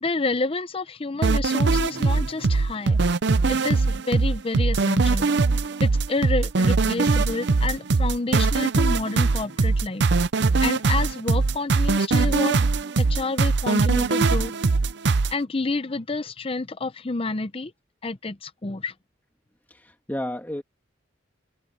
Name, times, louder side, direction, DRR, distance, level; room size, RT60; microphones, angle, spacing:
voice 1, 0.0-3.0 3.5-5.3 5.8-10.1 10.6-12.7 13.0-14.5 15.3-17.7 18.0-18.9, left 3 dB, 30° left, 0.6 m, -29 dB
sound 1, 1.2-15.3, right 3 dB, 60° right, 0.6 m, -21 dB
voice 2, 19.7-20.6, left 1 dB, 10° left, 2.1 m, -32 dB
head